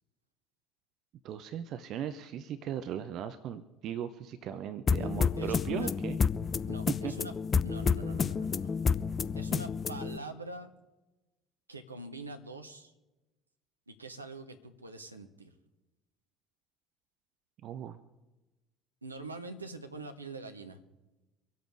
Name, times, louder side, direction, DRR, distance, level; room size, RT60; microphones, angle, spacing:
voice 1, 1.2-6.2 6.9-7.1 17.6-18.0, right 9 dB, 50° right, 12 dB, 0.7 m, -38 dB
sound 1, 4.9-10.2, left 5 dB, 30° left, 0.6 m, -30 dB
voice 2, 4.9-5.9 6.7-7.3 7.6-8.7 9.4-10.7 11.7-12.9 13.9-15.5 19.0-20.8, right 2 dB, 85° right, 7 dB, 1.0 m, -44 dB
25.0 x 8.3 x 4.8 m, 1.1 s
figure-of-eight pair, 60°, 0 cm